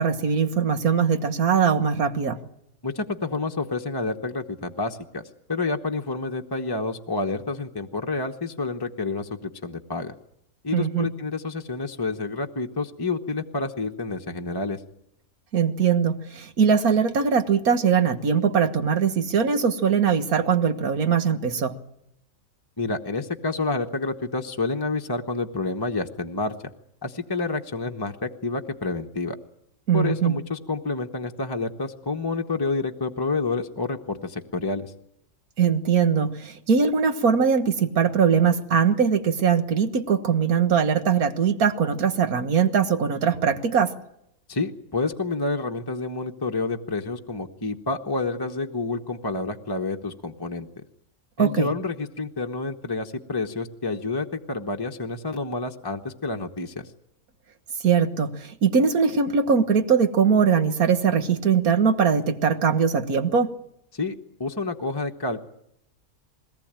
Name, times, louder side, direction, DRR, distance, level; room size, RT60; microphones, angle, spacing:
voice 1, 0.0-2.4 10.7-11.1 15.5-21.7 29.9-30.3 35.6-43.9 51.4-51.7 57.8-63.5, right 6 dB, 80° right, 8 dB, 1.9 m, -21 dB
voice 2, 2.8-5.2 5.5-10.1 10.6-14.8 22.8-26.5 27.0-29.4 29.9-34.9 44.5-50.7 51.4-56.9 63.9-65.5, left 3 dB, 20° left, 3 dB, 0.9 m, -29 dB
21.5 x 18.0 x 8.9 m, 0.78 s
omnidirectional pair, 1.5 m